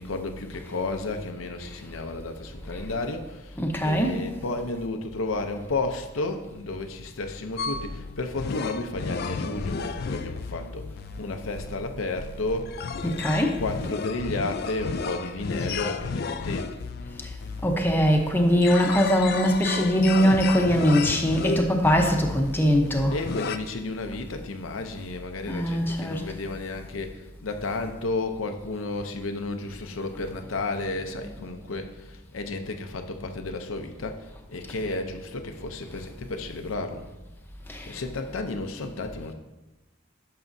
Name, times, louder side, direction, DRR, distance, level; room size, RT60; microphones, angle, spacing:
voice 1, 0.0-16.8 21.5-21.6 23.1-37.1 37.9-39.3, left 2 dB, 90° left, 6 dB, 0.7 m, -32 dB
voice 2, 3.6-4.2 13.0-13.6 17.6-23.1 25.5-26.2 31.3-31.4 37.7-37.9, equal, 10° left, 1 dB, 0.8 m, -22 dB
sound 1, 7.6-23.6, left 4 dB, 50° left, 0.4 m, -33 dB
11.0 x 6.0 x 2.7 m, 1.1 s
head